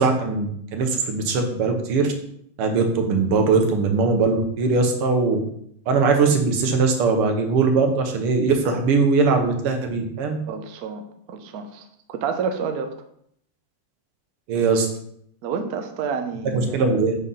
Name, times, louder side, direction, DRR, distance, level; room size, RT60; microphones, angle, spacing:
voice 1, 0.0-2.1 2.6-5.4 5.9-10.4 14.5-14.9 16.5-17.2, right 4 dB, 90° right, 4 dB, 1.9 m, -20 dB
voice 2, 10.5-12.9 15.4-16.9, right 6 dB, 65° right, 6 dB, 0.9 m, -29 dB
6.4 x 5.5 x 3.8 m, 0.71 s
omnidirectional pair, 2.4 m